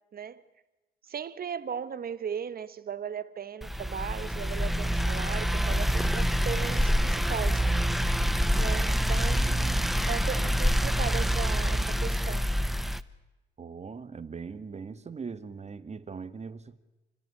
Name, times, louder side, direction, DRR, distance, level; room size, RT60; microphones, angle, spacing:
voice 1, 0.1-0.4 1.0-7.6 8.6-12.5, right 7 dB, 50° right, 1.3 m, -37 dB
sound 1, 3.6-13.0, equal, ahead, 0.9 m, -26 dB
voice 2, 13.6-16.8, right 5 dB, 35° right, 1.6 m, -40 dB
28.5 x 17.0 x 9.8 m
cardioid pair, 90°, 20 cm